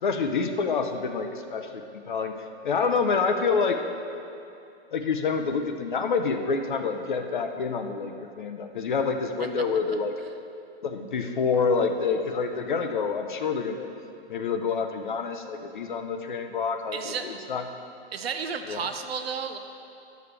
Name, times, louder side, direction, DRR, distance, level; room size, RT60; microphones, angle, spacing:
voice 1, 0.0-2.3 2.6-3.8 4.9-10.1 10.8-13.9 14.3-17.6 18.7-18.8, left 5 dB, 50° left, 6 dB, 0.5 m, -27 dB
voice 2, 16.9-17.3 18.1-19.6, right 6 dB, 65° right, 7 dB, 0.7 m, -32 dB
11.5 x 6.9 x 3.3 m, 2.6 s
hypercardioid pair, 170°, 32 cm